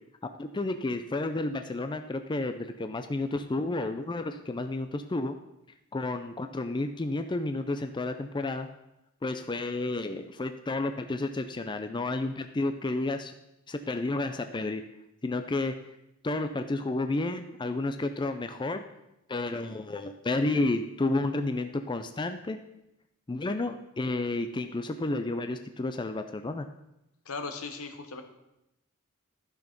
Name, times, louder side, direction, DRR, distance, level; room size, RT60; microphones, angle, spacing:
voice 1, 0.4-5.3 5.9-8.7 9.2-13.3 13.7-14.8 15.2-15.7 16.2-18.8 19.3-22.6 23.3-26.7, left 2 dB, 20° left, 8 dB, 0.5 m, -31 dB
voice 2, 27.3-28.2, left 4 dB, 80° left, 7 dB, 1.2 m, -37 dB
11.5 x 6.1 x 5.2 m, 0.88 s
head